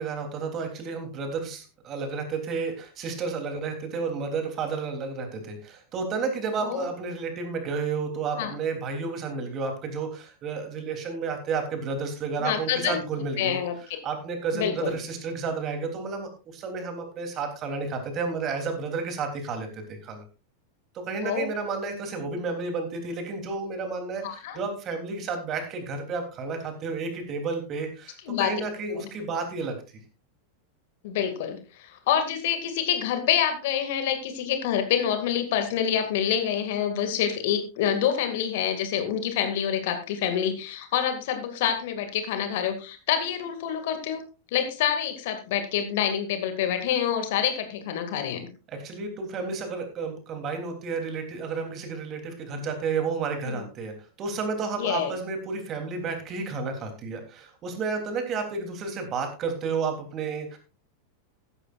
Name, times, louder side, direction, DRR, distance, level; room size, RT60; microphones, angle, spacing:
voice 1, 0.0-13.6 14.0-20.2 20.9-30.0 48.7-53.9 54.2-60.6, right 4 dB, 30° right, 5 dB, 3.3 m, -31 dB
voice 2, 12.4-13.0 13.4-13.7 14.5-14.9 21.2-21.5 24.2-24.6 28.3-28.5 28.9-29.0 31.0-44.2 44.5-48.5 53.4-53.7 54.8-55.1, left 9 dB, 50° left, 8 dB, 2.3 m, -27 dB
15.0 x 13.5 x 2.5 m, 0.32 s
figure-of-eight pair, 90°, 0 cm